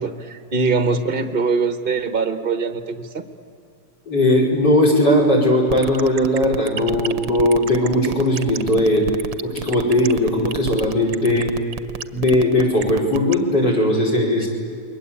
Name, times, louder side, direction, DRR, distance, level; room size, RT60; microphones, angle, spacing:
voice 1, 0.0-3.2 14.4-14.5, right 4 dB, 35° right, 9 dB, 1.1 m, -22 dB
voice 2, 4.1-9.1 9.4-11.5 12.1-14.5, left 1 dB, 60° left, 2 dB, 5.5 m, -18 dB
sound 1, 5.7-13.3, right 9 dB, 75° right, 1.6 m, -29 dB
28.5 x 22.5 x 8.5 m, 2.4 s
omnidirectional pair, 2.1 m